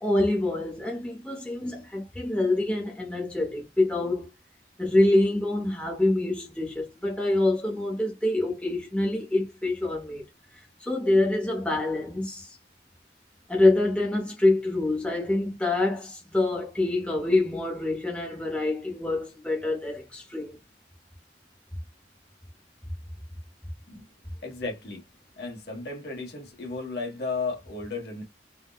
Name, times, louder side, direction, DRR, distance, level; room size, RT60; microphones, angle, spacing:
voice 1, 0.0-4.3 4.8-10.2 10.8-12.6 13.5-20.6, left 2 dB, 5° left, 0.7 m, -26 dB
voice 2, 24.4-25.0 25.4-28.2, left 3 dB, 60° left, 1.3 m, -34 dB
3.5 x 2.2 x 2.2 m
head